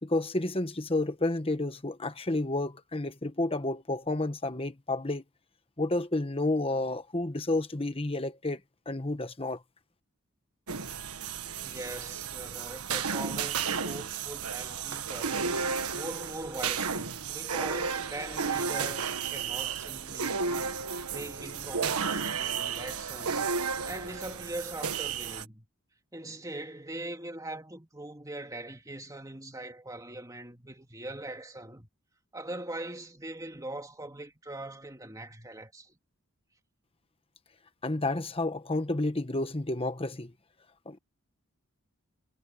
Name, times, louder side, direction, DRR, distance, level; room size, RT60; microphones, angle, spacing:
voice 1, 0.0-5.2 5.8-8.6 8.9-9.6 37.8-40.3 40.9-41.0, left 2 dB, 25° left, 1.2 m, -30 dB
sound 1, 10.7-25.5, right 6 dB, 85° right, 1.5 m, -33 dB
voice 2, 11.6-15.5 15.9-20.7 21.1-23.5 23.9-25.7 26.1-31.9 32.3-35.9, right 1 dB, 15° right, 2.5 m, -41 dB
head